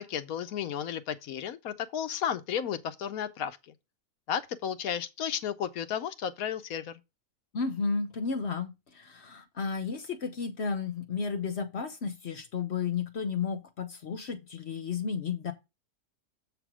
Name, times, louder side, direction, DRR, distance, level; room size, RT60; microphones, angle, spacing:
voice 1, 0.0-3.6 4.3-7.0, left 8 dB, 75° left, 1.2 m, -33 dB
voice 2, 7.5-15.5, left 5 dB, 55° left, 1.1 m, -33 dB
7.6 x 3.5 x 6.0 m
omnidirectional pair, 1.5 m